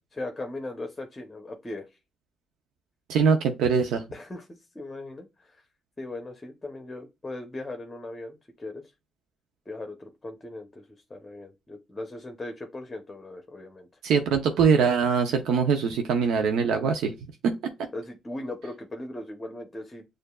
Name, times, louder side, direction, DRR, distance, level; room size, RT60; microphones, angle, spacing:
voice 1, 0.1-1.9 4.1-5.6 6.0-8.8 9.7-13.9 17.9-20.1, left 2 dB, 20° left, 0.8 m, -38 dB
voice 2, 3.1-4.0 14.0-17.1 17.4-17.5, right 6 dB, 85° right, 0.6 m, -22 dB
6.6 x 2.5 x 2.3 m
cardioid pair, 90°, 0 cm